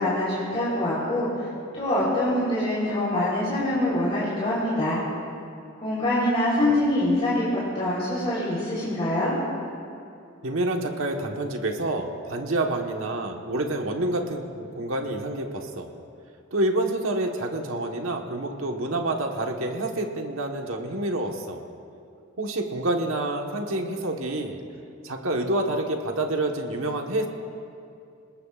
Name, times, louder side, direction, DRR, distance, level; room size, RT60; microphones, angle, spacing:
voice 1, 0.0-1.5 1.7-5.0 5.8-9.4, left 1 dB, 30° left, -9 dB, 3.8 m, -24 dB
voice 2, 10.4-15.9 16.5-21.6 22.4-24.6 25.0-27.3, right 2 dB, 70° right, 2 dB, 1.4 m, -28 dB
27.0 x 20.5 x 2.5 m, 2.5 s
head